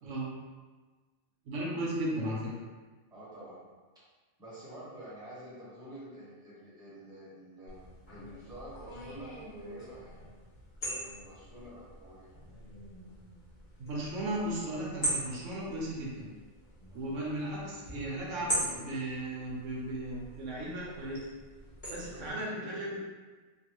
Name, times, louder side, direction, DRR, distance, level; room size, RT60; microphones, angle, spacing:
voice 1, 1.4-2.5 13.8-16.3 16.9-21.2 21.9-23.0, right 1 dB, 90° right, -4 dB, 1.1 m, -36 dB
voice 2, 3.1-3.6 4.4-10.1 10.8-12.3 22.0-22.7, right 1 dB, 5° right, -9 dB, 1.1 m, -48 dB
sound 1, 7.7-22.3, right 1 dB, 40° left, 1.5 m, -41 dB
3.2 x 2.5 x 2.9 m, 1.4 s
omnidirectional pair, 1.2 m